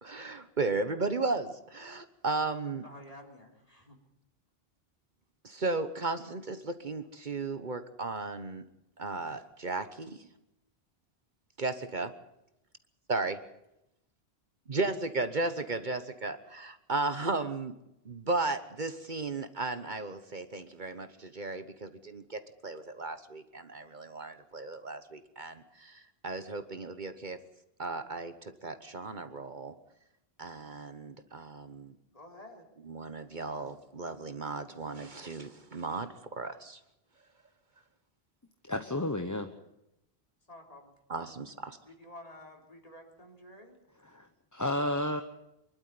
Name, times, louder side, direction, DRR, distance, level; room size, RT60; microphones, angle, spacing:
voice 1, 0.0-2.8 5.4-8.6 9.0-10.3 11.6-12.1 13.1-13.4 14.7-17.7 18.0-27.4 27.8-29.7 30.4-31.9 32.9-36.1 36.4-36.8 41.1-41.8, right 3 dB, 50° right, 10 dB, 1.3 m, -35 dB
voice 2, 2.8-4.0 32.1-32.7 40.5-41.3 41.9-43.8, left 1 dB, 35° left, 2 dB, 3.8 m, -51 dB
voice 3, 38.7-39.5 44.0-45.2, left 1 dB, 20° left, 7 dB, 1.0 m, -32 dB
24.5 x 12.0 x 9.6 m, 0.87 s
omnidirectional pair, 1.0 m